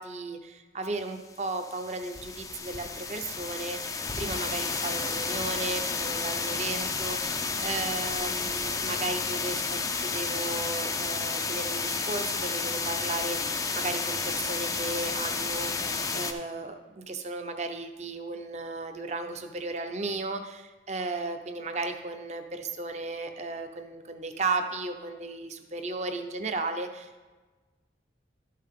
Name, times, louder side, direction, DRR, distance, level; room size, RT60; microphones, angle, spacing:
voice 1, 0.0-15.7 16.1-27.3, right 3 dB, 40° right, 6 dB, 0.7 m, -35 dB
sound 1, 1.4-16.3, left 4 dB, 20° left, 0.4 m, -31 dB
12.0 x 5.6 x 3.7 m, 1.3 s
head